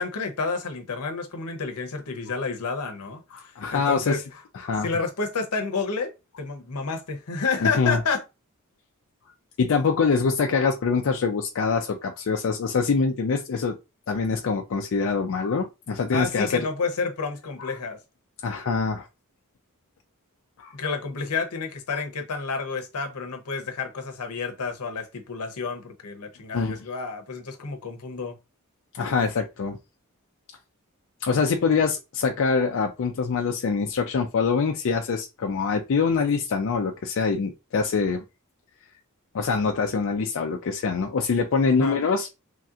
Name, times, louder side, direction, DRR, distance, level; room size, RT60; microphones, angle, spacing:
voice 1, 0.0-4.2 4.8-8.2 16.1-18.0 20.7-28.4 41.7-42.0, left 4 dB, 85° left, 0.7 m, -30 dB
voice 2, 3.3-4.2 4.6-4.9 7.6-8.0 9.6-13.7 14.1-16.6 17.6-17.7 18.4-19.1 20.6-20.7 26.5-26.8 28.9-29.8 31.2-38.2 39.3-42.4, left 5 dB, 60° left, 0.4 m, -24 dB
3.2 x 2.8 x 2.4 m
head